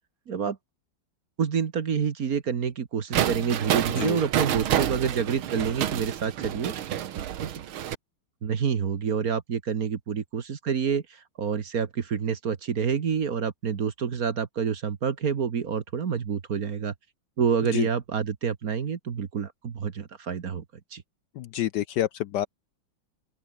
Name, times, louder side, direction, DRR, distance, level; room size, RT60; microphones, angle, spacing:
voice 1, 0.3-0.6 1.4-6.7 7.2-7.5 8.4-16.9 17.4-20.6 20.9-21.0, right 6 dB, 50° right, 1.7 m, -28 dB
sound 1, 3.1-8.0, right 10 dB, 85° right, 2.0 m, -28 dB
voice 2, 21.4-22.5, left 12 dB, 70° left, 1.2 m, -28 dB
open air
omnidirectional pair, 2.2 m